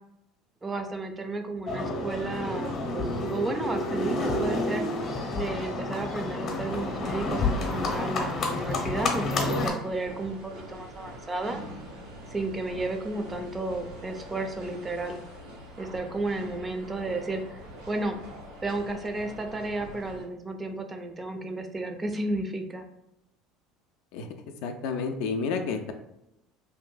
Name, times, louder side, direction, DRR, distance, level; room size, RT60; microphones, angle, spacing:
voice 1, 0.6-4.9 5.3-11.6 12.3-15.2 15.8-18.2 18.6-22.9, right 2 dB, 20° right, 6 dB, 0.4 m, -33 dB
Livestock farm animals working animals, 1.7-9.7, left 2 dB, 50° left, 0.7 m, -29 dB
sound 1, 6.6-20.2, equal, 90° right, 1.3 m, -44 dB
voice 2, 24.6-25.9, left 5 dB, 70° left, 5 dB, 0.3 m, -30 dB
2.6 x 2.5 x 2.2 m, 0.83 s
hypercardioid pair, 85°, 0 cm